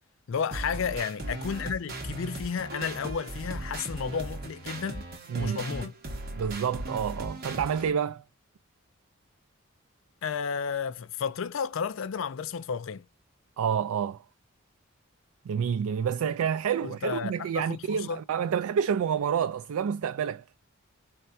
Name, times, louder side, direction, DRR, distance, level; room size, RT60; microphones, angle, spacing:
voice 1, 0.3-5.0 5.4-5.9 10.2-13.1 16.8-18.2, left 6 dB, 65° left, 0.4 m, -32 dB
sound 1, 0.5-7.9, right 1 dB, 45° right, 1.2 m, -38 dB
voice 2, 6.3-8.2 13.6-14.2 15.5-20.4, right 7 dB, 90° right, 0.3 m, -28 dB
4.4 x 3.3 x 2.6 m
head